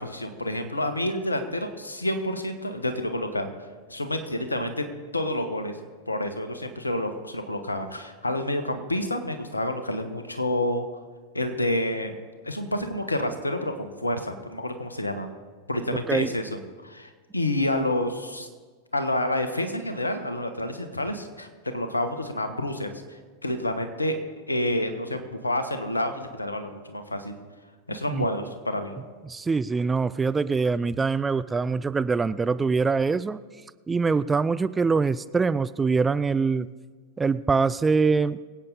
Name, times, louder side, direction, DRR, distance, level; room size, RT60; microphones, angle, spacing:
voice 1, 0.0-3.5 3.9-4.9 5.1-5.8 6.1-10.9 11.3-12.2 12.4-15.3 15.7-18.5 18.9-21.5 21.7-23.0 23.4-24.2 24.5-27.3 27.9-28.9, left 1 dB, 85° left, 8 dB, 1.3 m, -29 dB
voice 2, 27.9-28.2 29.3-33.4 33.9-36.7 37.2-38.4, right 4 dB, 15° right, 15 dB, 0.4 m, -24 dB
23.0 x 8.7 x 4.0 m, 1.5 s
figure-of-eight pair, 90°, 0 cm